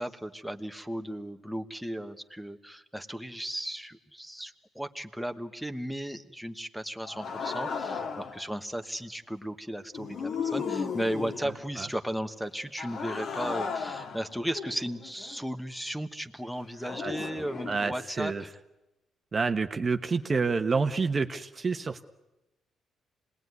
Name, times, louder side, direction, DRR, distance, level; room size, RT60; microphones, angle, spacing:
voice 1, 0.0-18.5, equal, ahead, 6 dB, 1.3 m, -35 dB
sound 1, 7.0-8.5 9.9-11.6 12.8-15.4 16.8-17.8, left 5 dB, 60° left, 2.0 m, -35 dB
voice 2, 17.7-18.4 19.3-22.0, right 4 dB, 35° right, 8 dB, 1.0 m, -28 dB
26.5 x 19.5 x 9.6 m, 1.0 s
cardioid pair, 90°, 0 cm